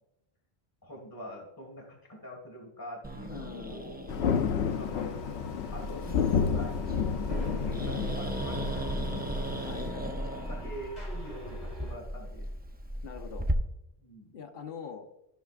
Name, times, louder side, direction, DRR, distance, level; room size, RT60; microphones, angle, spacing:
voice 1, 0.8-4.0 4.6-5.4 5.7-9.4 10.3-12.5 14.0-14.3, equal, 20° left, -1 dB, 1.8 m, -45 dB
Growling, 3.0-13.5, right 1 dB, 15° right, 0.4 m, -36 dB
voice 2, 3.3-4.0 5.9-6.0 9.6-10.2 13.0-13.5 14.3-15.1, left 7 dB, 60° left, 4 dB, 1.2 m, -43 dB
Thunder, 4.1-9.9, left 7 dB, 85° left, 0.9 m, -31 dB
sound 1, 4.7-11.9, left 1 dB, 40° left, 2.6 m, -45 dB
13.5 x 5.8 x 2.4 m, 0.88 s
omnidirectional pair, 1.1 m